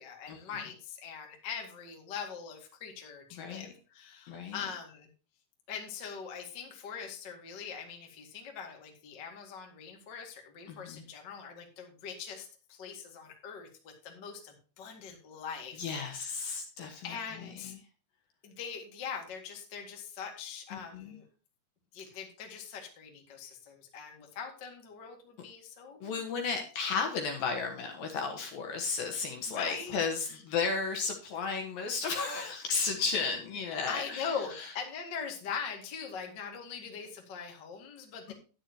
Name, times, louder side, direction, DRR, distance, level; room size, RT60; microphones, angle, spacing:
voice 1, 0.0-5.1 5.7-16.6 17.0-17.7 18.4-21.2 21.9-26.2 29.5-30.0 30.2-30.4 33.9-38.3, left 6 dB, 40° left, 2 dB, 1.6 m, -42 dB
voice 2, 4.3-4.6 10.7-11.0 15.8-17.2 17.7-17.8 20.7-21.1 26.0-34.3, left 5 dB, 65° left, 3 dB, 2.6 m, -33 dB
11.0 x 9.9 x 2.9 m, 0.36 s
omnidirectional pair, 5.3 m